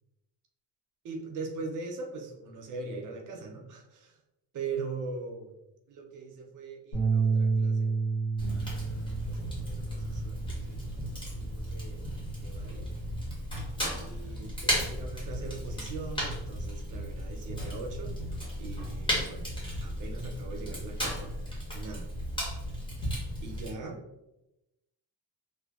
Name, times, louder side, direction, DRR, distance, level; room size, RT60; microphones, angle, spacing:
voice 1, 1.0-4.2 4.5-5.5 5.9-7.9 8.7-12.0 12.4-12.9 14.0-18.1 18.6-19.5 19.8-21.3 21.7-22.1 23.4-24.0, right 4 dB, 50° right, 2 dB, 0.4 m, -41 dB
sound 1, 6.9-13.2, right 4 dB, 75° left, 1.5 m, -31 dB
Fire, 8.4-23.7, equal, 10° left, 0.6 m, -35 dB
2.6 x 2.1 x 2.3 m, 0.90 s
cardioid pair, 175°, 43 cm